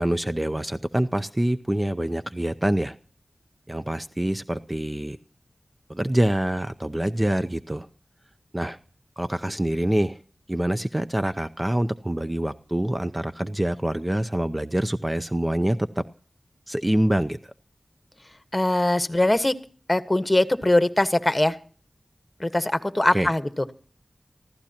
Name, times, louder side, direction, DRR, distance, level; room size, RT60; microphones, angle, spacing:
voice 1, 0.0-3.0 3.7-5.2 5.9-7.9 8.5-8.8 9.2-10.2 10.5-16.0 16.7-17.4 23.1-23.3, right 1 dB, 20° right, 11 dB, 0.6 m, -25 dB
voice 2, 18.5-19.5 19.9-21.6 22.4-23.5, left 1 dB, 25° left, 11 dB, 1.4 m, -21 dB
27.0 x 15.0 x 2.9 m, 0.42 s
cardioid pair, 45°, 0 cm